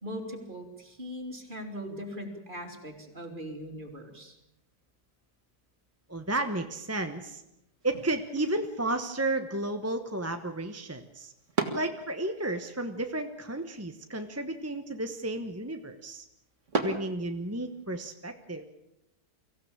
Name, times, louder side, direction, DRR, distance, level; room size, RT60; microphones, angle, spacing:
voice 1, 0.0-4.4, equal, 30° right, 3 dB, 3.4 m, -40 dB
voice 2, 6.1-7.4 7.8-11.3 11.7-16.2 16.8-18.7, right 2 dB, 10° right, 7 dB, 0.8 m, -32 dB
sound 1, 7.8-17.8, right 3 dB, 45° right, 2.3 m, -40 dB
24.0 x 16.0 x 8.7 m, 0.85 s
omnidirectional pair, 1.8 m